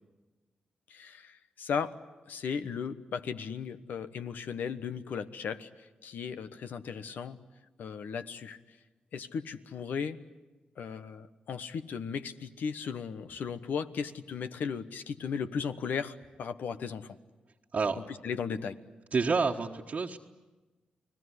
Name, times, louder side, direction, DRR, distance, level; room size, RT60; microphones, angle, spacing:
voice 1, 0.9-1.9 2.3-7.4 7.8-8.8 9.1-10.2 10.8-17.2 17.9-18.8, left 6 dB, 75° left, 11 dB, 1.2 m, -36 dB
voice 2, 19.1-20.2, right 4 dB, 55° right, -1 dB, 1.4 m, -28 dB
29.5 x 19.0 x 9.8 m, 1.2 s
supercardioid pair, 45°, 3 cm